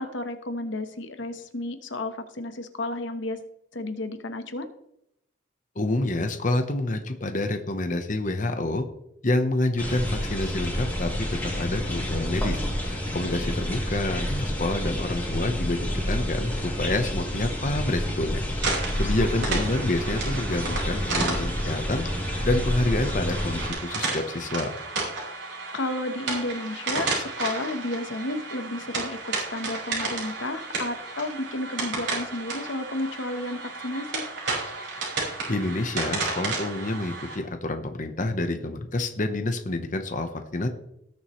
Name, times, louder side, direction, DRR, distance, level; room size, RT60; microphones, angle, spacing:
voice 1, 0.0-3.4 3.7-4.7 19.0-19.5 25.7-34.2, left 2 dB, 70° left, 8 dB, 1.1 m, -32 dB
voice 2, 5.8-8.9 9.2-18.4 18.7-22.1 22.4-24.7 35.1-40.7, left 2 dB, 40° left, 6 dB, 1.0 m, -28 dB
sound 1, 9.8-23.7, equal, 10° left, 2.6 m, -29 dB
sound 2, 18.6-37.4, right 3 dB, 60° right, 5.1 m, -32 dB
18.5 x 7.3 x 3.2 m, 0.78 s
head